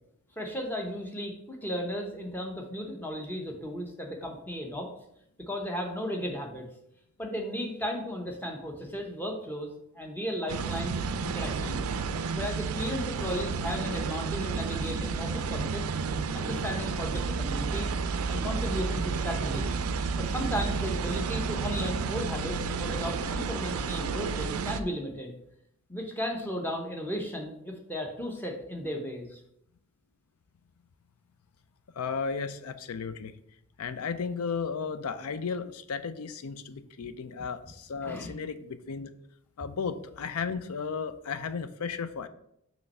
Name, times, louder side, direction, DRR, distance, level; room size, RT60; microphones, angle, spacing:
voice 1, 0.4-4.9 5.4-6.7 7.2-10.9 11.2-11.8 12.3-15.8 16.3-17.9 18.3-19.7 20.1-25.3 25.9-29.4 38.0-38.3, equal, 10° left, 1 dB, 0.8 m, -35 dB
sound 1, 10.5-24.8, right 5 dB, 75° right, 0.4 m, -31 dB
voice 2, 31.9-33.3 33.8-39.1 39.6-42.3, left 5 dB, 80° left, 12 dB, 0.4 m, -34 dB
5.6 x 3.1 x 5.4 m, 0.76 s
head